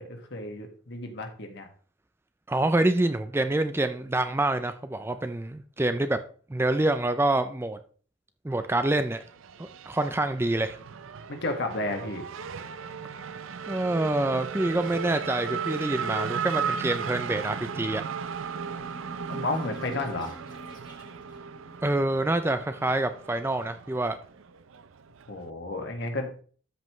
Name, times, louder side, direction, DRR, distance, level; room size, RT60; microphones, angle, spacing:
voice 1, 0.0-1.7 11.3-12.2 19.3-20.3 25.3-26.3, left 2 dB, 55° left, 4 dB, 1.7 m, -32 dB
voice 2, 2.5-6.2 6.5-7.8 8.4-9.2 9.6-10.8 13.7-18.0 21.8-24.2, right 2 dB, 10° right, 9 dB, 0.4 m, -26 dB
Race car auto racing / Accelerating revving vroom, 8.5-25.5, right 6 dB, 70° right, 0.5 m, -36 dB
sound 1, 17.2-22.4, left 1 dB, 20° left, 1.6 m, -49 dB
13.0 x 5.4 x 3.1 m, 0.43 s
head